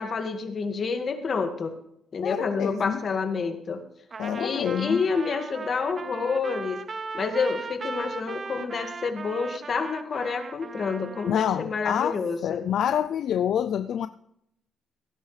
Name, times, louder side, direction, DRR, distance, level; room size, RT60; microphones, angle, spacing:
voice 1, 0.0-1.7 2.1-3.8 4.4-6.8 7.1-12.7, left 5 dB, 45° left, 6 dB, 1.9 m, -28 dB
voice 2, 2.2-3.0 4.2-5.0 11.3-14.1, left 9 dB, 70° left, 12 dB, 0.4 m, -27 dB
Trumpet, 4.1-11.5, right 4 dB, 40° right, 0.8 m, -38 dB
17.5 x 10.0 x 3.3 m, 0.75 s
cardioid pair, 90°, 0 cm